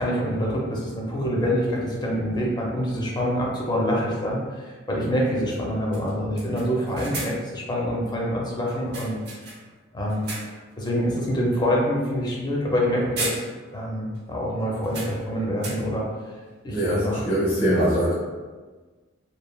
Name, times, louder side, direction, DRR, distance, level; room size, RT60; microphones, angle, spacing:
voice 1, 0.0-9.2 9.9-10.3 10.8-13.4 13.7-16.1 16.6-17.2, equal, 20° left, -3 dB, 0.5 m, -26 dB
sound 1, 2.3-2.4 4.5-4.6 5.0-5.1 5.5-5.7 5.9-7.6 8.7-9.8 10.1-10.7 11.2-11.4 12.6-12.8 13.2-13.9 14.1-14.2 14.8-16.1, right 2 dB, 55° right, 0.6 m, -36 dB
voice 2, 16.7-18.1, equal, 45° left, -11 dB, 1.3 m, -22 dB
3.1 x 2.3 x 2.2 m, 1.3 s
head